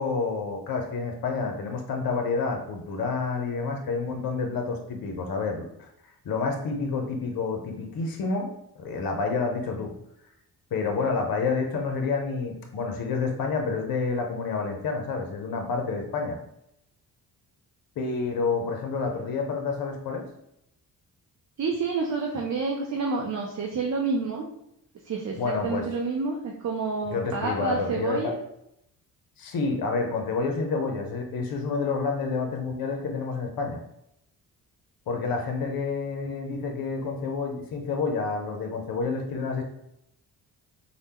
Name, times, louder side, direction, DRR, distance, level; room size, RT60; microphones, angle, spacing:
voice 1, 0.0-5.9 6.2-9.9 10.7-16.4 18.0-20.3 25.4-25.9 27.1-28.3 29.4-33.8 35.1-39.6, left 4 dB, 50° left, 3 dB, 0.7 m, -29 dB
voice 2, 21.6-24.4 25.0-28.3, right 4 dB, 35° right, -1 dB, 0.6 m, -29 dB
3.3 x 2.2 x 2.8 m, 0.79 s
hypercardioid pair, 45°, 46 cm